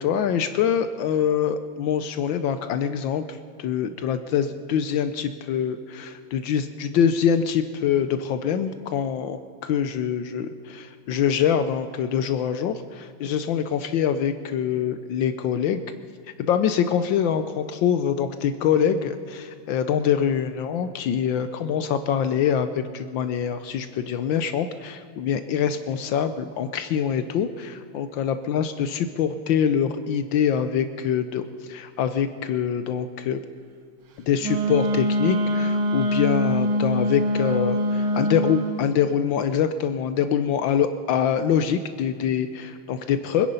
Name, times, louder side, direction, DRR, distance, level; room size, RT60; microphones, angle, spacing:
voice 1, 0.0-15.8 16.4-33.4 34.3-43.5, left 8 dB, 75° left, 10 dB, 1.4 m, -24 dB
Wind instrument woodwind instrument, 34.4-38.8, equal, 85° right, 2.1 m, -23 dB
25.0 x 10.5 x 5.5 m, 2.3 s
omnidirectional pair, 2.2 m